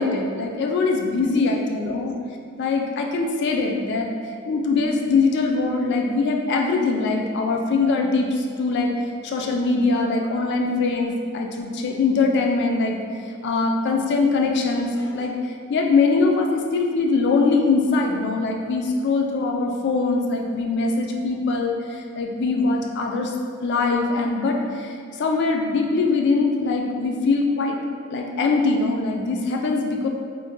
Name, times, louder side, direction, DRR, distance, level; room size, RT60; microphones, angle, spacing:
voice 1, 0.0-2.1 2.6-4.1 4.5-8.9 9.2-23.3 23.6-27.8 28.1-30.1, left 3 dB, 50° left, 2 dB, 0.3 m, -22 dB
2.5 x 2.2 x 3.6 m, 2.2 s
head